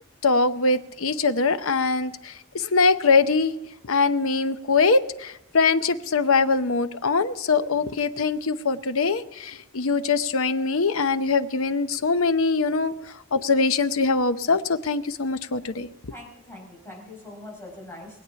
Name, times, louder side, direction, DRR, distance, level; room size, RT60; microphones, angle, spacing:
voice 1, 0.2-3.5 3.9-12.9 13.3-15.9, left 4 dB, 75° left, 11 dB, 0.8 m, -22 dB
voice 2, 16.1-18.2, left 1 dB, 10° left, -2 dB, 5.0 m, -42 dB
21.5 x 8.5 x 5.8 m, 0.94 s
head